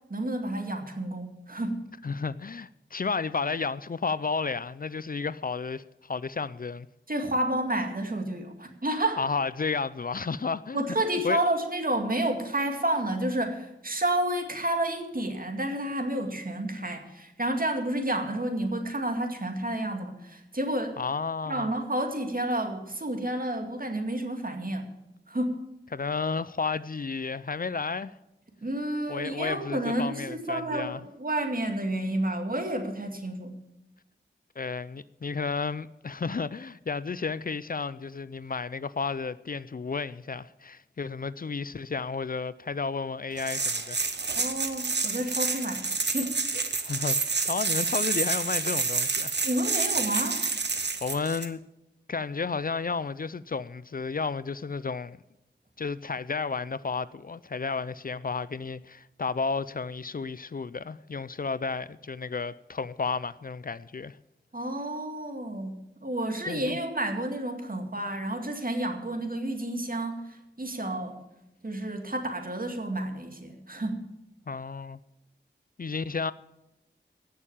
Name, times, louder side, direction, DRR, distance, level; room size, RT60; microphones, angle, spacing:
voice 1, 0.1-1.8 7.1-9.2 10.7-21.0 21.5-24.9 25.3-25.6 28.6-33.6 44.3-46.7 49.4-50.4 64.5-65.7 66.0-71.2 71.6-74.1, right 1 dB, 50° right, 2.3 m, -30 dB
voice 2, 2.0-6.9 9.2-10.8 11.1-11.4 21.0-21.7 25.9-28.1 29.1-31.0 34.6-44.0 46.8-49.3 51.0-51.6 52.1-55.2 55.8-64.2 66.5-66.8 74.5-75.0 75.8-76.3, left 4 dB, 50° left, 0.4 m, -32 dB
sound 1, 43.4-51.5, right 4 dB, 65° right, 1.1 m, -29 dB
17.5 x 6.7 x 7.3 m
wide cardioid pair, 40°, 19 cm